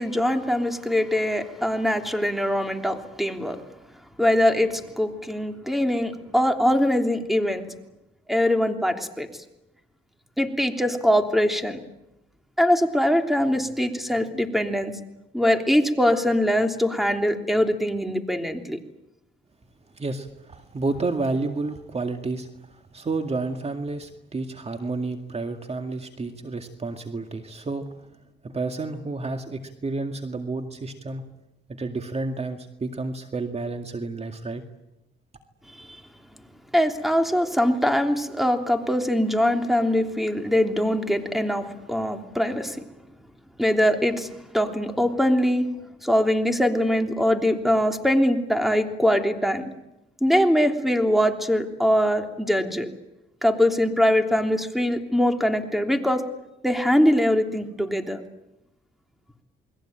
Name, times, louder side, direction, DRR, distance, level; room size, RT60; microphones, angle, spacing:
voice 1, 0.0-3.6 4.2-7.6 8.3-9.3 10.4-11.8 12.6-15.0 15.3-18.8 35.8-36.0 36.7-42.8 43.6-45.7 46.0-49.7 50.2-52.9 53.4-56.2 56.6-58.2, equal, ahead, 5 dB, 3.2 m, -22 dB
voice 2, 19.9-27.9 28.4-31.3 31.7-34.6, right 3 dB, 30° right, 6 dB, 2.1 m, -30 dB
29.0 x 21.5 x 9.0 m, 0.91 s
cardioid pair, 90°, 20 cm